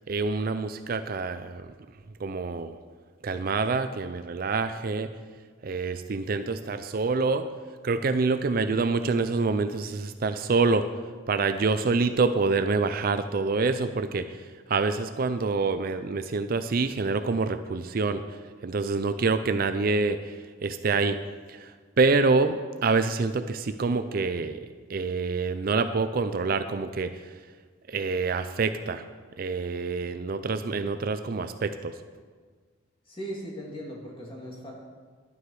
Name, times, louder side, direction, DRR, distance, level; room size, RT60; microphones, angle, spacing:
voice 1, 0.1-1.7 2.2-2.8 3.2-5.1 5.6-7.5 7.8-10.9 11.3-14.3 14.7-18.2 18.6-21.2 21.5-21.7 22.0-27.1 27.9-29.0 29.4-31.9, right 4 dB, 45° right, 10 dB, 0.4 m, -26 dB
voice 2, 33.1-34.7, equal, 25° left, -2 dB, 2.3 m, -38 dB
11.5 x 9.6 x 4.8 m, 1.5 s
head